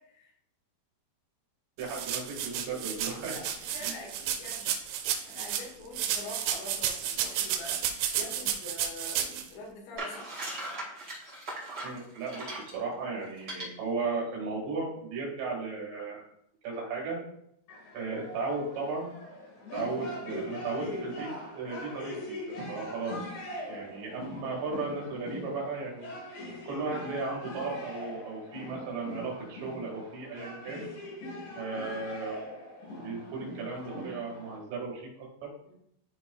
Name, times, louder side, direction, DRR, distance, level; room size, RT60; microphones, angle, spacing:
voice 1, 1.8-3.4 3.8-3.9 11.8-16.2 16.6-17.2 17.9-19.1 19.7-23.3 23.7-26.2 26.7-30.9 31.6-32.4 33.0-35.5, right 4 dB, 70° right, -3 dB, 4.1 m, -35 dB
sound 1, 1.8-5.7 5.9-9.4, right 9 dB, 85° right, 3.0 m, -32 dB
voice 2, 3.2-4.7 5.2-10.5 35.7-35.8, left 2 dB, 75° left, -3 dB, 4.1 m, -45 dB
sound 2, 10.0-12.8 13.4-13.6, right 2 dB, 55° right, 1.2 m, -38 dB
sound 3, 17.7-34.6, left 1 dB, 60° left, 2.0 m, -41 dB
12.5 x 4.4 x 2.3 m, 0.72 s
omnidirectional pair, 5.4 m